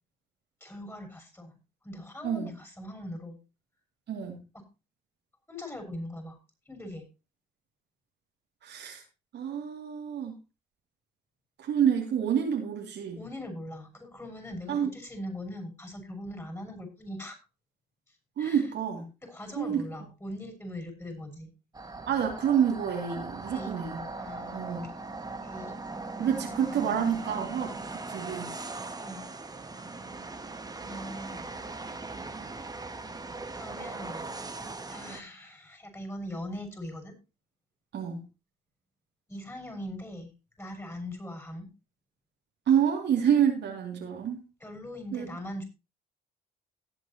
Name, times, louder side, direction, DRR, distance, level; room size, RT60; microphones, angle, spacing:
voice 1, 0.6-1.5 1.8-3.4 5.5-6.4 6.7-7.0 13.1-17.4 18.1-18.6 19.2-21.5 23.5-23.8 24.2-25.0 25.4-25.8 29.0-29.3 30.8-31.4 33.6-34.3 34.9-37.1 39.3-40.3 40.6-41.7 44.6-45.6, left 1 dB, 10° left, 5 dB, 6.4 m, -41 dB
voice 2, 4.1-4.4 8.6-9.0 9.3-10.4 11.6-13.2 14.7-14.9 18.4-19.0 19.6-19.8 22.1-24.0 24.5-24.9 26.2-27.8 28.1-28.6 37.9-38.2 42.7-44.4 45.1-45.3, right 8 dB, 55° right, 0 dB, 2.9 m, -28 dB
sound 1, 21.7-35.2, right 3 dB, 20° right, 1.6 m, -39 dB
18.0 x 8.2 x 3.0 m, 0.29 s
hypercardioid pair, 50°, 21 cm